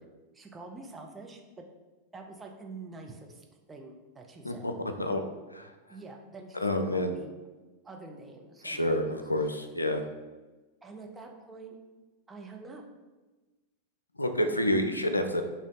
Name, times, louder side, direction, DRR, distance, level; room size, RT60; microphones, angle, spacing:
voice 1, 0.3-1.6 2.1-4.7 5.9-7.3 7.8-9.6 10.8-11.8 12.3-12.8, right 3 dB, 15° right, 1 dB, 0.6 m, -46 dB
voice 2, 6.6-7.1 8.6-10.0 14.2-15.4, left 1 dB, 85° left, 7 dB, 0.4 m, -28 dB
5.1 x 2.7 x 3.7 m, 1.2 s
figure-of-eight pair, 90°, 0 cm